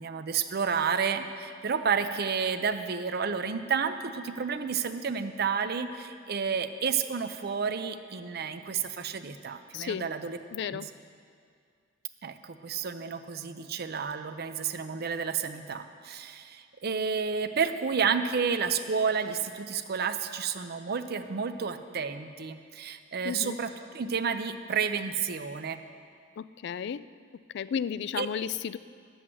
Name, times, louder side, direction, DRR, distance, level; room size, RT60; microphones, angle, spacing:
voice 1, 0.0-10.9 12.2-23.7 23.9-25.8 28.2-28.3, right 6 dB, 55° right, 9 dB, 0.6 m, -31 dB
voice 2, 9.7-10.1 10.5-10.9 23.2-23.6 26.4-27.0 27.5-28.8, left 7 dB, 60° left, 16 dB, 0.3 m, -33 dB
11.0 x 7.9 x 7.7 m, 2.2 s
head